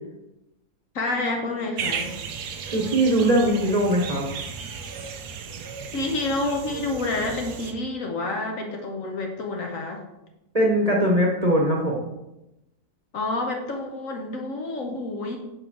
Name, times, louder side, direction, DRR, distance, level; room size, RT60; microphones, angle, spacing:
voice 1, 0.9-2.2 5.9-10.0 13.1-15.4, left 2 dB, 60° left, 2 dB, 1.2 m, -28 dB
sound 1, 1.8-7.7, right 6 dB, 80° right, 1.3 m, -34 dB
voice 2, 2.7-4.3 10.5-12.0, right 1 dB, 25° right, -2 dB, 1.1 m, -21 dB
4.9 x 4.8 x 6.1 m, 0.93 s
omnidirectional pair, 1.7 m